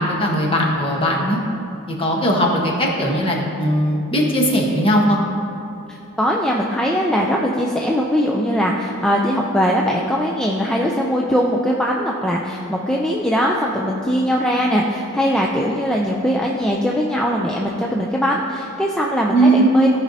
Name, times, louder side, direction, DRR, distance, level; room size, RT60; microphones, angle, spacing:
voice 1, 0.0-1.4 1.9-5.2 19.3-19.7, right 1 dB, 25° left, -2 dB, 1.1 m, -18 dB
voice 2, 6.2-19.9, equal, 5° left, -2 dB, 0.4 m, -20 dB
14.5 x 5.2 x 2.7 m, 2.7 s
head